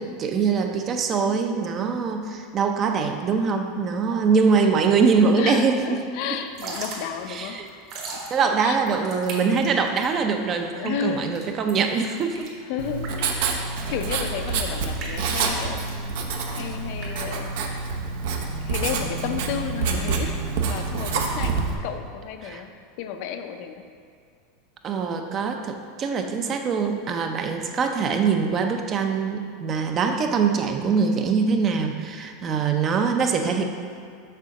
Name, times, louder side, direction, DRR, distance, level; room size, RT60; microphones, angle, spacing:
voice 1, 0.0-6.0 7.3-7.6 8.3-12.5 22.4-22.6 24.8-33.6, right 5 dB, 30° right, 5 dB, 0.5 m, -23 dB
voice 2, 5.4-7.8 8.1-8.8 10.8-11.3 12.6-17.7 18.3-22.7 23.0-23.8, left 7 dB, 55° left, 7 dB, 0.5 m, -33 dB
Drip / Trickle dribble, 6.4-18.0, right 3 dB, 50° right, 1.4 m, -39 dB
Writing, 12.8-21.7, right 4 dB, 65° right, 0.8 m, -27 dB
6.6 x 3.8 x 6.4 m, 2.2 s
supercardioid pair, 150°, 0 cm